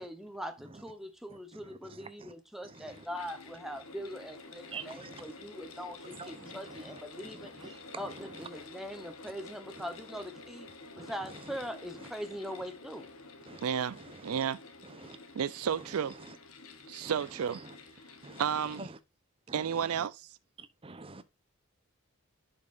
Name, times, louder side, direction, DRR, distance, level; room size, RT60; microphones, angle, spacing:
voice 1, 0.0-7.5 8.0-10.7 11.0-13.1, equal, ahead, 0.9 m, -42 dB
voice 2, 1.3-2.3 2.6-3.0 4.7-5.3 6.0-8.5 11.0-11.6 12.0-12.1 13.5-13.6 14.0-14.4 14.8-15.2 15.8-15.9 16.2-16.4 17.0-17.7 18.2-19.0 19.5-20.1 20.6-21.2, right 3 dB, 25° right, 0.7 m, -48 dB
sound 1, 2.6-18.8, left 3 dB, 75° left, 1.2 m, -50 dB
voice 3, 13.6-14.6 15.3-16.1 16.9-17.6 18.4-18.9 19.5-20.4, right 7 dB, 90° right, 0.4 m, -32 dB
10.5 x 5.4 x 2.5 m
head